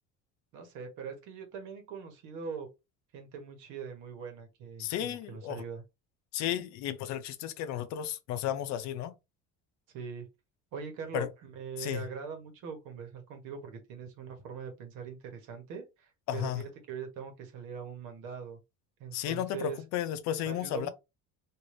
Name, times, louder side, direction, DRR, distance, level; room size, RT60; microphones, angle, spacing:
voice 1, 0.5-2.7 3.1-5.8 9.9-10.3 10.7-18.6 19.0-19.8 20.4-20.9, right 6 dB, 75° right, 1.2 m, -42 dB
voice 2, 4.8-5.6 6.3-9.1 11.1-11.3 11.8-12.0 16.3-16.6 19.1-20.9, left 11 dB, 65° left, 0.5 m, -33 dB
3.2 x 2.6 x 2.5 m
cardioid pair, 160°, 30 cm